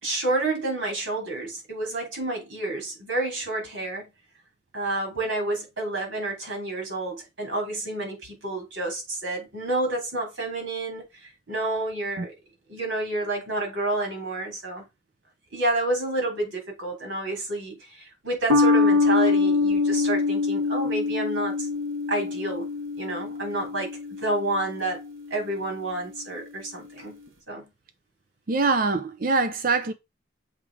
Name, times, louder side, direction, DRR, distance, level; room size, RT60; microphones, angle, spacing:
voice 1, 0.0-4.0 4.7-12.3 12.7-14.8 15.5-21.7 22.1-22.7 23.0-23.9 24.2-25.0 25.3-27.1 27.5-27.6, right 2 dB, 65° right, 3.7 m, -29 dB
sound 1, 18.5-25.2, left 3 dB, 80° right, 1.8 m, -24 dB
voice 2, 28.5-29.9, right 4 dB, 45° right, 0.5 m, -23 dB
7.3 x 3.2 x 4.8 m
head